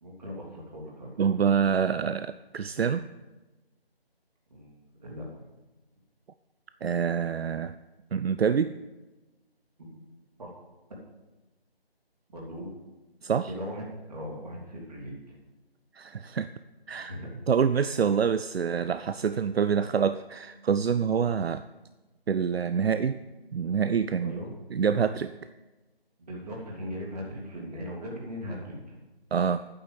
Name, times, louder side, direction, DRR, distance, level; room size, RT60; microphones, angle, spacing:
voice 1, 0.0-1.1 4.5-5.2 9.8-10.0 10.4-10.5 12.3-12.7 13.5-15.4 16.9-17.3 24.2-24.5 26.2-29.0, equal, 40° right, -2 dB, 3.0 m, -39 dB
voice 2, 1.2-3.1 6.8-7.7 8.1-8.8 13.2-13.5 15.9-16.5 16.9-17.2 17.5-21.6 22.3-23.2 23.5-24.3 24.7-25.3 29.3-29.7, right 7 dB, 75° right, 12 dB, 0.5 m, -26 dB
9.2 x 6.8 x 7.7 m, 1.1 s
figure-of-eight pair, 165°, 31 cm